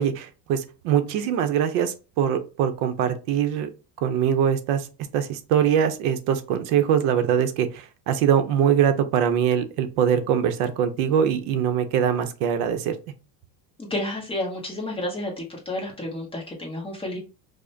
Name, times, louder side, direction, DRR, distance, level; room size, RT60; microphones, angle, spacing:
voice 1, 0.0-3.7 4.0-4.9 5.1-13.0, right 8 dB, 80° right, 8 dB, 0.7 m, -23 dB
voice 2, 13.8-17.2, left 1 dB, 10° left, -2 dB, 0.8 m, -31 dB
4.9 x 2.1 x 2.6 m, 0.32 s
cardioid pair, 160°, 46 cm